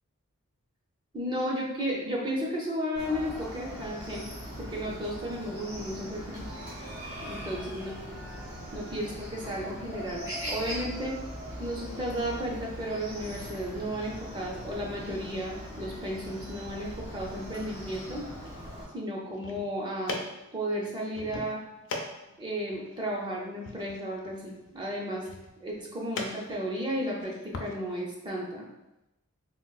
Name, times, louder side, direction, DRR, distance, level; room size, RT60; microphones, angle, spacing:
voice 1, 1.1-4.3 4.6-6.5 7.2-8.2 8.7-11.2 11.6-18.2 18.9-20.2 20.5-21.6 22.4-25.3 25.6-28.7, equal, 20° right, -3 dB, 0.5 m, -34 dB
Chicken rooster, 2.9-18.8, equal, 50° right, 1.3 m, -40 dB
sound 1, 19.2-27.7, left 2 dB, 55° left, 0.4 m, -42 dB
3.7 x 2.3 x 2.3 m, 0.97 s
head